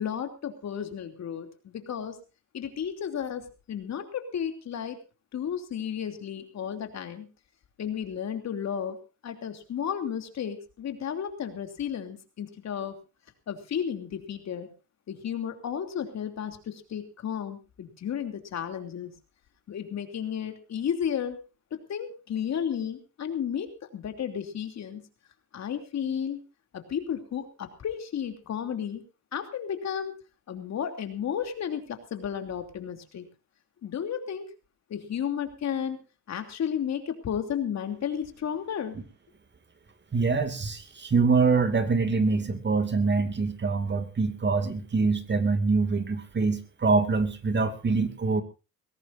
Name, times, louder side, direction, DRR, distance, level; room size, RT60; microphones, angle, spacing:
voice 1, 0.0-2.2 2.5-5.0 5.3-7.3 7.8-12.9 13.5-14.7 15.1-19.1 19.7-21.4 21.9-23.7 23.9-25.0 25.5-26.4 26.7-29.0 29.3-30.2 30.5-33.3 33.8-34.5 34.9-36.0 36.3-39.0, left 8 dB, 60° left, 5 dB, 3.1 m, -33 dB
voice 2, 40.1-48.4, right 4 dB, 35° right, 8 dB, 2.5 m, -25 dB
21.5 x 17.0 x 2.7 m, 0.31 s
cardioid pair, 90°, 30 cm